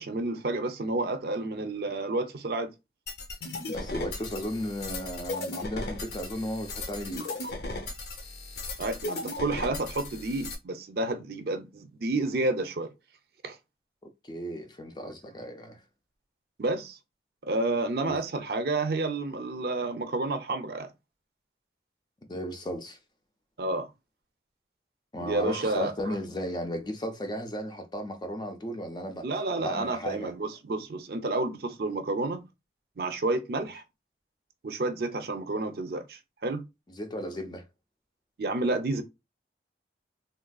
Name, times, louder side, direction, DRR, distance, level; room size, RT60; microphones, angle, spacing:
voice 1, 0.0-2.7 8.8-12.9 13.4-13.6 16.6-17.0 17.4-20.9 23.6-23.9 25.2-26.2 29.2-32.4 33.0-33.8 34.6-36.6 38.4-39.0, right 2 dB, 60° right, 0.5 m, -30 dB
sound 1, 3.1-10.6, left 2 dB, 65° left, 0.7 m, -36 dB
voice 2, 3.7-7.3 14.2-15.8 18.1-18.2 22.3-23.0 25.1-29.3 29.6-30.3 37.0-37.6, equal, 25° left, 0.4 m, -35 dB
3.3 x 2.4 x 2.2 m
head